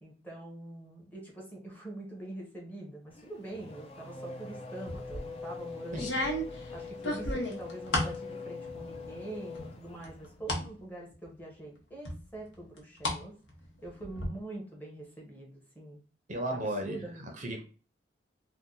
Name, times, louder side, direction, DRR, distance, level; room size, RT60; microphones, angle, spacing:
voice 1, 0.0-6.1 6.7-13.3 13.8-16.0 16.5-17.5, right 2 dB, 10° left, 0.9 m, -44 dB
Race car auto racing / Accelerating revving vroom, 3.1-10.4, left 4 dB, 35° left, 0.4 m, -43 dB
sound 1, 4.9-5.3 5.9-8.2 8.6-9.2 9.6-10.7 11.1-11.2 12.1-13.2 13.5-14.3, left 1 dB, 75° left, 0.9 m, -33 dB
voice 2, 16.3-17.6, right 1 dB, 40° right, 0.6 m, -35 dB
2.7 x 2.1 x 3.7 m
head